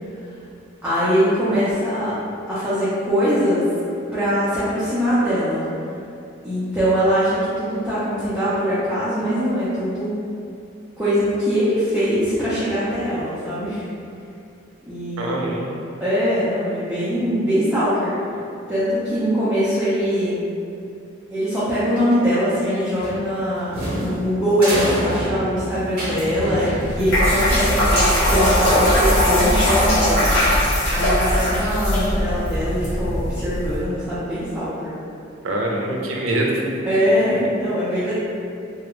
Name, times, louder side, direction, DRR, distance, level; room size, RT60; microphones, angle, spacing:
voice 1, 0.8-2.2 2.5-3.6 4.1-5.6 6.4-10.1 11.0-13.8 14.9-15.6 16.0-18.1 18.7-20.4 21.3-30.3 30.7-35.0 36.9-38.1, equal, 5° right, -13 dB, 0.4 m, -22 dB
voice 2, 15.2-15.8 35.4-37.4, right 1 dB, 80° right, -1 dB, 0.4 m, -25 dB
sound 1, 23.0-27.4, equal, 45° right, 0.7 m, -27 dB
sound 2, 26.8-33.8, equal, 65° left, 0.8 m, -19 dB
2.3 x 2.1 x 2.9 m, 2.6 s
head